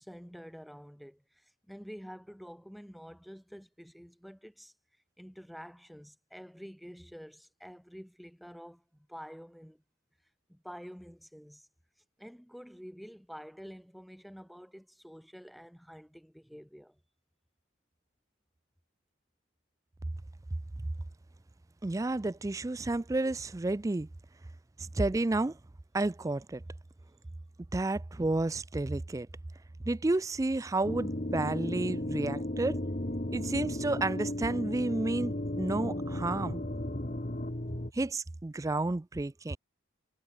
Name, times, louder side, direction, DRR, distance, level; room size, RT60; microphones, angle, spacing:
voice 1, 0.0-4.7 5.2-9.8 10.5-11.7 12.2-17.0 24.8-25.0, equal, ahead, 3.3 m, -48 dB
voice 2, 21.8-24.1 24.9-25.6 25.9-26.6 27.7-29.3 29.9-32.8 33.3-36.6 37.9-39.6, right 2 dB, 15° right, 0.3 m, -31 dB
sound 1, 30.8-37.9, left 1 dB, 35° left, 1.6 m, -34 dB
head